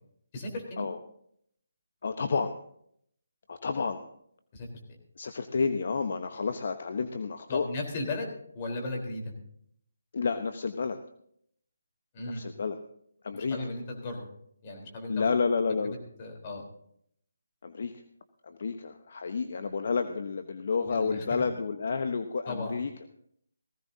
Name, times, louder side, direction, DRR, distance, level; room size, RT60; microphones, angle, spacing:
voice 1, 0.3-0.9 4.5-4.7 7.5-9.3 12.1-12.4 13.3-14.3 14.6-15.3 15.8-16.6 20.8-21.4 22.5-22.8, left 2 dB, 30° left, 2 dB, 3.9 m, -36 dB
voice 2, 2.0-2.6 3.5-4.0 5.2-7.7 10.1-11.0 12.3-12.8 13.2-13.6 15.1-16.0 17.6-18.0 18.4-22.9, left 5 dB, 55° left, 8 dB, 0.9 m, -30 dB
19.0 x 15.5 x 2.8 m, 0.69 s
figure-of-eight pair, 155°, 0 cm